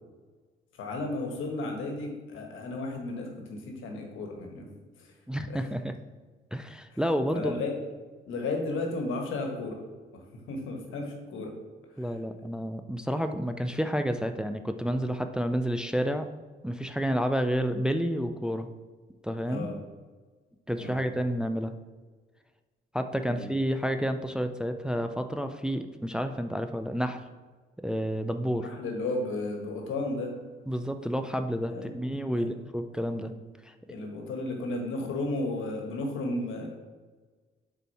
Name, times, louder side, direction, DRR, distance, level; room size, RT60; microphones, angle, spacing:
voice 1, 0.8-4.7 5.0-5.1 5.5-5.7 7.3-7.8 8.3-9.8 10.1-11.5 12.0-12.2 19.5-19.8 20.8-21.0 23.3-23.5 28.4-30.3 31.7-31.9 32.3-32.5 33.9-36.7, left 2 dB, 80° left, 2 dB, 1.4 m, -34 dB
voice 2, 5.3-5.9 6.5-7.5 12.0-16.3 16.6-18.7 19.2-19.7 20.7-21.7 22.9-27.2 27.8-28.7 30.7-33.3 33.6-33.7, equal, 5° right, 8 dB, 0.4 m, -30 dB
6.7 x 4.4 x 4.2 m, 1.4 s
cardioid pair, 90°, 20 cm